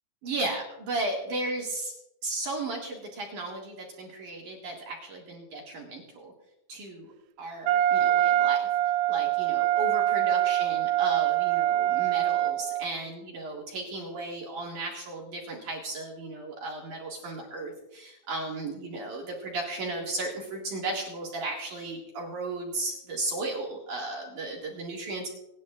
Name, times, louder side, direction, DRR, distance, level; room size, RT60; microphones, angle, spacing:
voice 1, 0.2-1.9 2.2-6.3 6.7-7.1 7.4-8.7 9.1-25.3, right 2 dB, 55° right, -2 dB, 2.9 m, -35 dB
Wind instrument woodwind instrument, 7.7-12.9, right 13 dB, 80° right, 2.4 m, -24 dB
26.0 x 9.7 x 2.4 m, 0.86 s
omnidirectional pair, 4.8 m